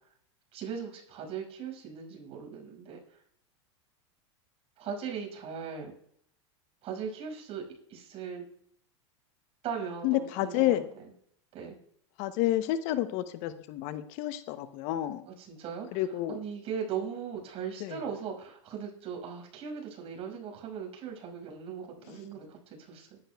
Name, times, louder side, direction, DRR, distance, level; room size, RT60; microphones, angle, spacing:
voice 1, 0.5-3.0 4.8-5.9 6.8-7.6 7.9-8.4 9.6-10.8 11.5-11.7 15.3-16.0 16.3-23.2, right 7 dB, 40° right, 1 dB, 5.6 m, -39 dB
voice 2, 10.0-10.8 12.2-15.2 15.9-16.4 17.8-18.0, left 13 dB, 55° left, 12 dB, 0.8 m, -30 dB
20.0 x 12.0 x 2.3 m, 0.67 s
hypercardioid pair, 105°, 15 cm